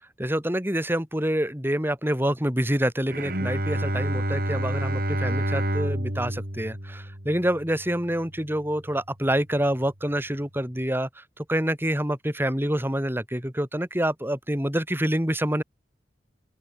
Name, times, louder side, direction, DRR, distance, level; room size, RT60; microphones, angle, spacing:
voice 1, 0.2-15.6, right 1 dB, 15° right, 4.7 m, -27 dB
Bowed string instrument, 3.1-8.4, right 1 dB, 55° right, 6.0 m, -29 dB
open air
head